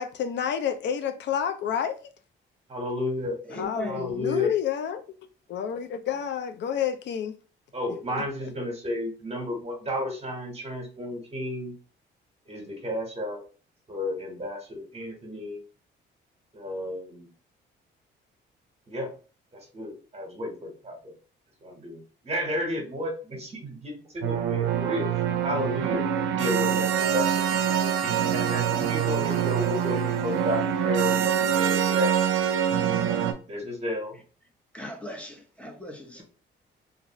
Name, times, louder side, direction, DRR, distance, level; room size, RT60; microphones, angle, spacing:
voice 1, 0.0-2.0 3.5-5.0 5.5-7.3 8.1-8.2, left 8 dB, 65° left, 0.4 m, -29 dB
voice 2, 2.7-3.4 3.8-4.5 7.7-11.7 12.5-13.4 13.9-15.6 16.5-17.3 18.9-19.1 19.5-21.1 21.6-26.0 26.3-32.1 33.5-34.1 36.1-36.2, left 1 dB, 30° right, 1.1 m, -32 dB
voice 3, 3.4-4.0 34.7-36.2, equal, 5° left, 0.7 m, -38 dB
sound 1, 24.2-33.3, right 9 dB, 80° right, 0.5 m, -25 dB
2.5 x 2.4 x 3.0 m
cardioid pair, 90°, 20 cm